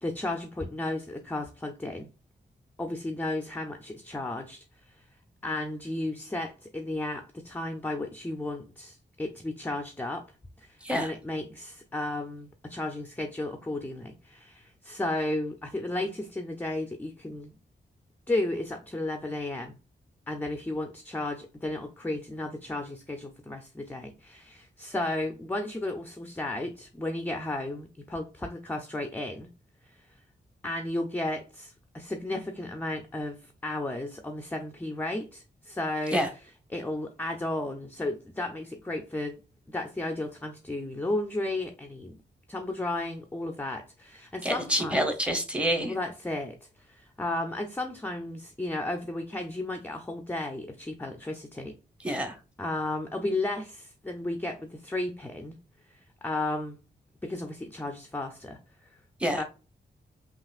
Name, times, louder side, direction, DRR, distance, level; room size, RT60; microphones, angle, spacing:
voice 1, 0.0-2.1 2.8-4.6 5.4-10.3 10.6-17.5 18.3-19.8 20.3-29.5 30.6-36.2 36.7-39.4 39.7-42.2 42.5-45.1 45.8-51.8 52.6-55.6 55.9-56.8 57.2-58.6 59.3-59.4, left 2 dB, 10° left, 0.4 m, -33 dB
voice 2, 44.4-45.9 52.0-52.4 59.2-59.4, equal, 5° right, 0.8 m, -27 dB
5.5 x 2.8 x 2.3 m
wide cardioid pair, 160°, 18 cm